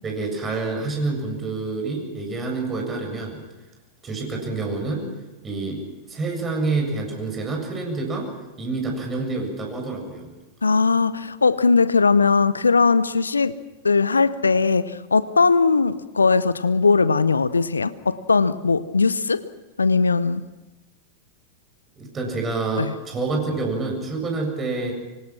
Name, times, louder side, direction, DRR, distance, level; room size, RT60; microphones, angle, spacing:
voice 1, 0.0-3.4 4.0-5.1 5.4-5.8 6.1-8.3 8.6-10.3 22.0-24.9, right 3 dB, 20° right, 2 dB, 7.3 m, -27 dB
voice 2, 10.6-13.5 13.8-19.4 19.8-20.4 22.8-22.9, left 4 dB, 75° left, 16 dB, 0.8 m, -19 dB
26.0 x 24.5 x 6.1 m, 1.1 s
figure-of-eight pair, 90°, 0 cm